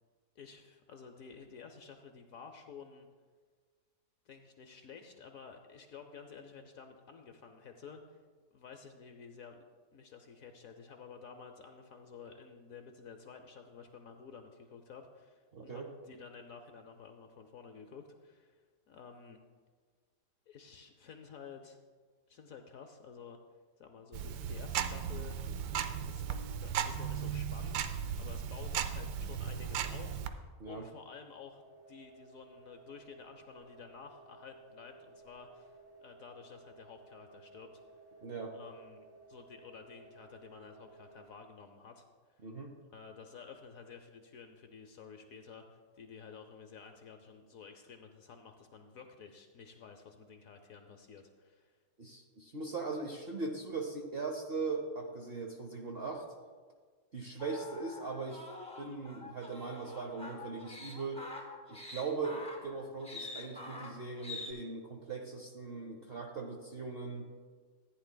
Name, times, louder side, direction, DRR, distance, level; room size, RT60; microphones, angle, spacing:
voice 1, 0.4-3.1 4.3-8.2 8.5-9.6 9.9-19.4 20.5-21.8 22.3-23.4 23.8-25.4 26.1-31.6 31.9-37.8 38.5-42.4 42.9-51.8, left 6 dB, 65° left, 5 dB, 0.9 m, -52 dB
voice 2, 15.5-15.9 30.6-30.9 38.2-38.5 42.4-42.7 52.0-56.2 57.1-58.4 58.8-61.3 61.7-67.3, right 4 dB, 55° right, 1 dB, 0.7 m, -39 dB
Tick-tock, 24.1-30.3, right 8 dB, 75° right, 1.2 m, -36 dB
sound 1, 31.4-41.3, right 3 dB, 25° left, 0.6 m, -57 dB
sound 2, 57.4-64.5, left 2 dB, 5° left, 1.3 m, -46 dB
14.5 x 9.4 x 2.2 m, 1.5 s
omnidirectional pair, 1.9 m